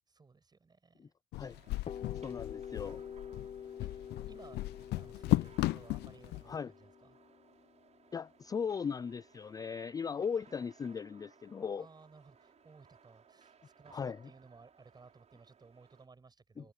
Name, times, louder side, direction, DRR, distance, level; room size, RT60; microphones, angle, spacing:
voice 1, 0.1-1.1 3.8-4.6 5.0-7.2 11.8-16.7, right 4 dB, 25° right, 6.8 m, -58 dB
sound 1, 1.3-6.4, left 18 dB, 75° left, 0.6 m, -35 dB
sound 2, 1.4-16.1, right 7 dB, 40° right, 6.8 m, -64 dB
sound 3, 1.9-9.6, left 8 dB, 35° left, 0.8 m, -47 dB
voice 2, 2.2-3.0 6.5-6.7 8.1-11.9 13.9-14.2 16.6-16.7, left 6 dB, 20° left, 0.3 m, -38 dB
cardioid pair, 110°, 17 cm